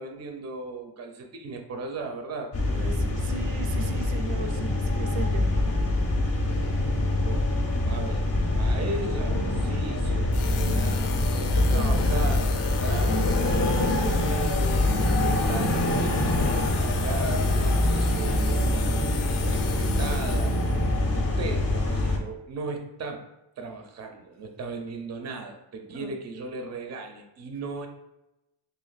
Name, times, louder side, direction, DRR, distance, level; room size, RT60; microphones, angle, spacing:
voice 1, 0.0-2.5 7.2-7.5 7.8-8.3 8.5-18.9 19.4-20.5 21.1-23.2 23.6-27.9, right 3 dB, 35° right, 5 dB, 0.5 m, -37 dB
sound 1, 2.5-22.2, left 2 dB, 30° left, 0.6 m, -24 dB
voice 2, 2.7-5.5 25.9-26.1, right 4 dB, 85° right, 6 dB, 0.6 m, -37 dB
sound 2, 10.3-20.9, left 8 dB, 75° left, 0.5 m, -39 dB
2.9 x 2.7 x 4.0 m, 0.91 s
wide cardioid pair, 115°, 50 cm